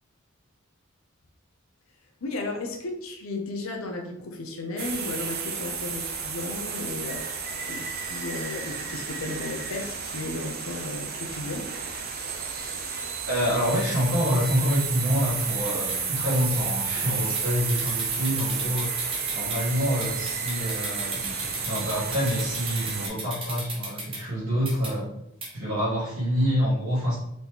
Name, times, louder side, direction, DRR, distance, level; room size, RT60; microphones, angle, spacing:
voice 1, 2.2-11.7 17.2-17.4, left 2 dB, 75° left, 3 dB, 0.6 m, -34 dB
sound 1, 4.8-23.1, right 5 dB, 45° right, 0.6 m, -32 dB
voice 2, 13.3-25.1 25.5-27.2, equal, 75° right, -10 dB, 1.5 m, -27 dB
sound 2, 15.6-16.0 17.4-17.5 17.7-19.6 20.0-24.2 24.7-24.9 25.4-25.5, right 2 dB, 25° right, 1.0 m, -35 dB
4.1 x 3.0 x 3.6 m, 0.80 s
head